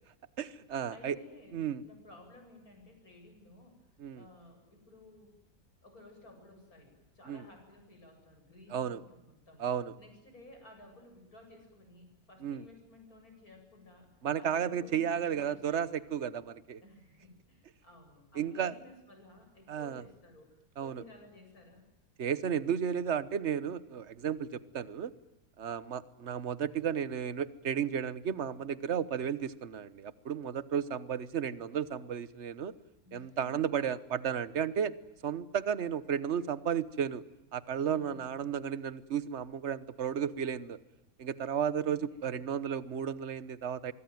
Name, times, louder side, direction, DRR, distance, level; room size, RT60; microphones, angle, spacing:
voice 1, 0.4-1.2 1.5-1.8 4.0-4.3 7.3-7.4 8.7-9.0 9.6-9.9 12.4-12.6 14.2-16.8 18.3-18.7 19.7-20.0 20.8-21.0 22.2-25.1 25.6-32.7 33.1-34.9 35.2-37.2 37.5-40.8 41.2-43.9, right 8 dB, 45° right, 16 dB, 1.3 m, -33 dB
voice 2, 0.9-3.8 4.1-5.3 5.8-9.6 10.0-14.1 14.3-16.2 16.8-20.5 20.8-21.8 33.0-33.6 37.8-38.4 41.8-42.4, left 1 dB, 60° left, 4 dB, 8.4 m, -55 dB
25.0 x 23.5 x 9.2 m, 0.96 s
omnidirectional pair, 1.7 m